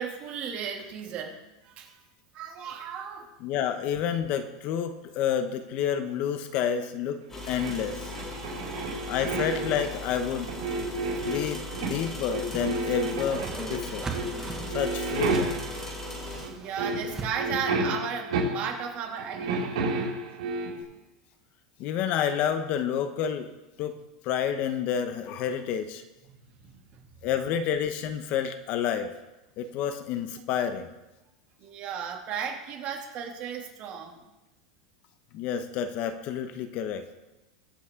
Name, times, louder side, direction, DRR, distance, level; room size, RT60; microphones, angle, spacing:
voice 1, 0.0-1.4 1.6-2.0 2.3-3.3 8.3-9.1 11.2-11.3 16.5-20.1 26.2-27.0 31.6-34.2, right 7 dB, 40° right, 1 dB, 2.7 m, -36 dB
voice 2, 3.4-8.1 9.1-10.5 11.2-14.1 14.7-15.5 21.8-23.5 23.8-23.9 24.2-26.0 27.2-29.1 29.6-30.9 35.3-37.1, left 8 dB, 45° left, 9 dB, 1.0 m, -29 dB
sound 1, 7.3-16.5, left 1 dB, 10° left, 3.0 m, -38 dB
sound 2, 7.6-9.9 10.4-12.1 12.3-13.8 14.1-14.4 14.7-15.9 16.4-16.5 16.8-18.9 19.2-20.8, right 2 dB, 80° right, 5.7 m, -31 dB
Whoosh swoosh swish, 12.3-17.3, right 4 dB, 15° right, 1.7 m, -40 dB
22.5 x 8.5 x 3.8 m, 1.0 s
supercardioid pair, 140°, 3 cm